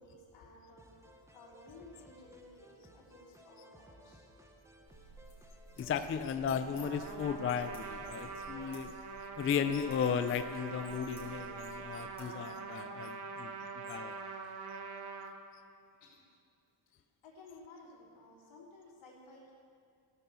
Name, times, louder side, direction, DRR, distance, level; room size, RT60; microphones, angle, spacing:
voice 1, 0.0-4.2 16.0-16.2 16.9-17.0 17.2-19.5, left 2 dB, 80° left, -5 dB, 3.6 m, -56 dB
sound 1, 0.8-9.0, right 1 dB, 5° right, 0.9 m, -59 dB
sound 2, 4.9-12.2, right 1 dB, 10° left, 3.8 m, -57 dB
voice 2, 5.8-8.9 9.4-14.1, left 7 dB, 30° left, 9 dB, 0.4 m, -35 dB
Trumpet, 6.8-15.3, right 5 dB, 55° right, 1.1 m, -44 dB
16.0 x 6.2 x 6.9 m, 2.3 s
cardioid pair, 150°, 47 cm